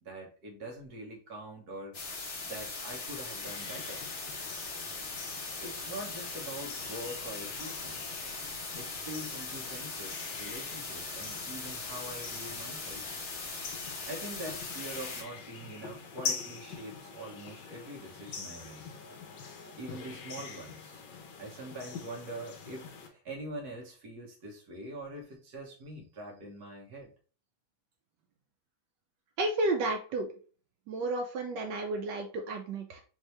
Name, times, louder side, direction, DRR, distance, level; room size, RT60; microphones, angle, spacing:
voice 1, 0.0-4.0 5.6-8.2 8.7-13.0 14.0-18.9 19.8-21.0 21.4-27.1, right 1 dB, 55° right, 0 dB, 1.5 m, -44 dB
sound 1, 1.9-15.2, left 3 dB, 45° left, 1.1 m, -40 dB
sound 2, 3.4-23.1, left 5 dB, 65° left, 1.3 m, -45 dB
voice 2, 29.4-30.3 30.9-33.0, right 2 dB, 70° right, 4 dB, 1.1 m, -32 dB
4.5 x 2.7 x 3.2 m, 0.39 s
omnidirectional pair, 2.2 m